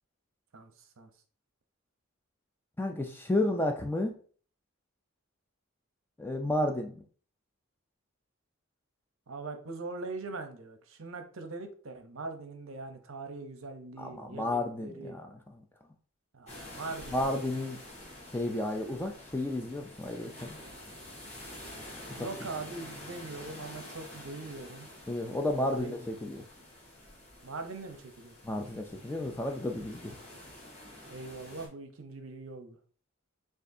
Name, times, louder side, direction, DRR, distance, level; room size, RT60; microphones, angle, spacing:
voice 1, 0.5-1.1 9.3-15.2 16.3-17.6 22.1-24.9 25.5-25.9 27.4-28.3 31.1-32.8, right 3 dB, 65° right, 6 dB, 0.7 m, -42 dB
voice 2, 2.8-4.2 6.2-7.0 14.0-15.3 17.1-17.8 18.3-20.6 22.2-22.3 25.1-26.4 28.4-30.2, left 1 dB, 10° left, 4 dB, 0.3 m, -32 dB
sound 1, 16.5-31.7, left 1 dB, 30° left, 1.3 m, -48 dB
6.5 x 2.5 x 2.6 m, 0.44 s
head